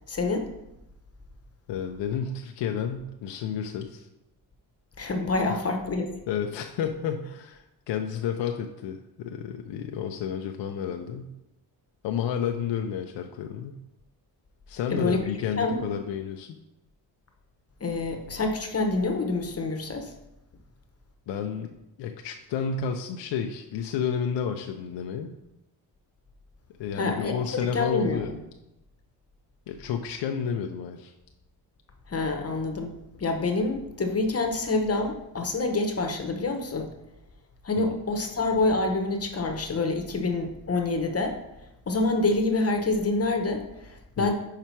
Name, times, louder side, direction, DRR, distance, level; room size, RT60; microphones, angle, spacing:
voice 1, 0.1-0.5 5.0-6.1 14.9-15.2 15.6-15.8 17.8-20.1 26.9-27.4 27.7-28.4 32.1-36.9 37.6-41.4 41.9-44.3, left 3 dB, 35° left, 4 dB, 1.0 m, -27 dB
voice 2, 1.7-4.1 5.5-5.6 6.3-11.3 12.0-13.8 14.7-16.5 21.3-21.7 22.0-25.3 26.8-28.3 29.7-31.1 37.8-37.9 44.2-44.3, left 7 dB, 70° left, 4 dB, 0.7 m, -31 dB
5.7 x 4.8 x 4.6 m, 0.89 s
cardioid pair, 80°, 44 cm